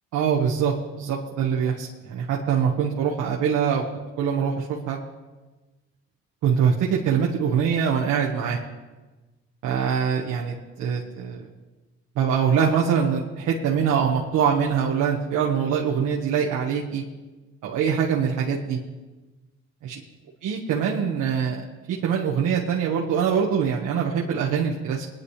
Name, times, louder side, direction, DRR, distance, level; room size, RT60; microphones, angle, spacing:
voice 1, 0.1-3.8 4.2-5.0 6.4-8.6 9.6-11.5 12.1-17.0 17.6-18.8 19.8-20.0 20.4-21.6 21.9-25.1, right 7 dB, 90° right, -2 dB, 1.5 m, -23 dB
21.5 x 10.5 x 3.3 m, 1.2 s
cardioid pair, 90°, 30 cm